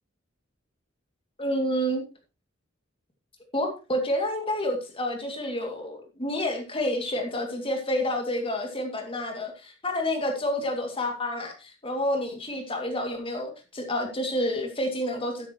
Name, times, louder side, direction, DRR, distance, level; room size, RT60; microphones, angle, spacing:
voice 1, 1.4-2.0 3.5-15.5, left 1 dB, 30° left, 3 dB, 2.4 m, -29 dB
13.0 x 9.5 x 3.0 m, 0.30 s
head